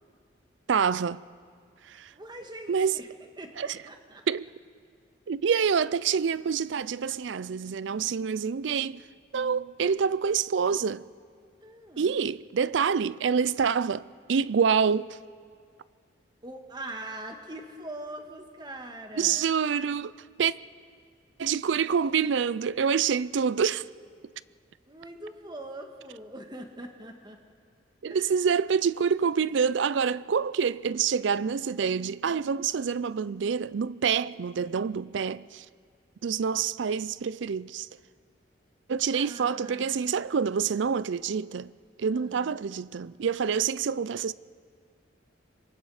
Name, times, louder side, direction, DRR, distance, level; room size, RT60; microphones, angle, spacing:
voice 1, 0.7-1.2 1.9-2.1 2.7-3.0 3.6-3.8 4.3-4.5 5.3-9.0 9.3-11.1 12.0-15.2 19.2-20.5 21.4-23.8 28.0-35.7 36.2-37.9 38.9-41.7 42.0-44.3, right 6 dB, 70° right, 0.4 m, -27 dB
voice 2, 2.1-3.1 3.4-4.2 11.6-12.2 16.4-19.5 24.9-27.4 28.1-28.5 39.1-40.1 42.1-42.6, right 1 dB, 20° right, 1.6 m, -42 dB
26.0 x 22.5 x 4.9 m
head